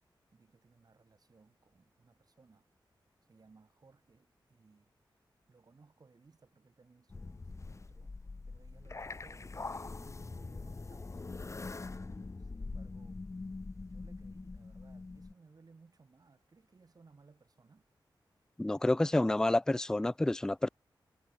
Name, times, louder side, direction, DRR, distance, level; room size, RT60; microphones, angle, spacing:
voice 1, 0.3-2.7 3.2-4.9 5.5-8.1 8.5-9.5 9.9-13.2 13.8-17.9, right 4 dB, 50° right, 4.7 m, -63 dB
sound 1, 7.1-15.3, left 3 dB, 35° left, 1.7 m, -43 dB
voice 2, 18.6-20.7, left 1 dB, 10° left, 0.3 m, -29 dB
wide cardioid pair, 90°, 8 cm